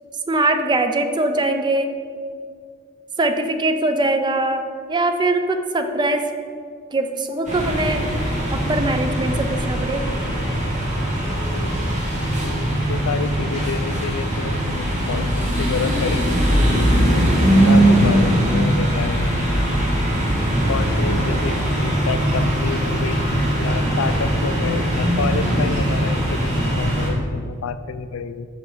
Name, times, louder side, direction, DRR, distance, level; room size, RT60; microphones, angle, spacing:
voice 1, 0.3-1.9 3.2-4.6 4.9-6.2 6.9-8.0 8.5-10.1, right 2 dB, 20° right, 7 dB, 0.5 m, -21 dB
sound 1, 7.4-27.1, right 1 dB, 35° right, 1.8 m, -20 dB
voice 2, 12.4-16.4 16.7-17.3 17.6-19.3 20.7-23.3 23.6-28.5, left 5 dB, 75° left, 12 dB, 0.4 m, -29 dB
5.7 x 5.4 x 6.1 m, 2.1 s
head